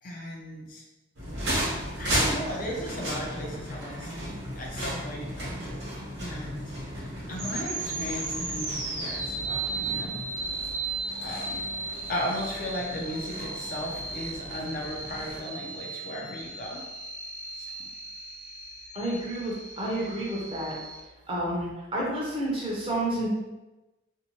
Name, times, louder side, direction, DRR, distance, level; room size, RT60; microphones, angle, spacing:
voice 1, 0.0-0.8 2.0-6.6 6.9-10.2 11.2-11.6 12.1-16.8 17.5-17.9, equal, 40° left, -2 dB, 0.4 m, -36 dB
sound 1, 1.1-15.4, equal, 65° right, 1.0 m, -35 dB
sound 2, 7.4-21.0, right 3 dB, 85° right, 0.7 m, -36 dB
voice 2, 18.9-20.8 21.3-23.3, right 1 dB, 25° right, -5 dB, 0.6 m, -30 dB
2.6 x 2.1 x 2.9 m, 1.1 s
head